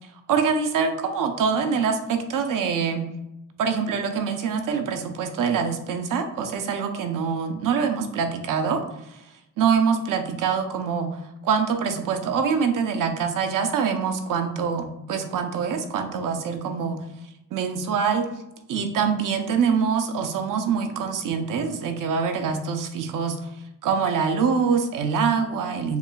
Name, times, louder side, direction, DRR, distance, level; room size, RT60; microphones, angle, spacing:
voice 1, 0.3-3.1 3.6-9.2 9.6-17.0 17.5-18.3 18.7-23.5 23.8-26.0, right 6 dB, 65° right, 5 dB, 0.6 m, -25 dB
6.8 x 2.4 x 2.3 m, 0.87 s
cardioid pair, 150°, 34 cm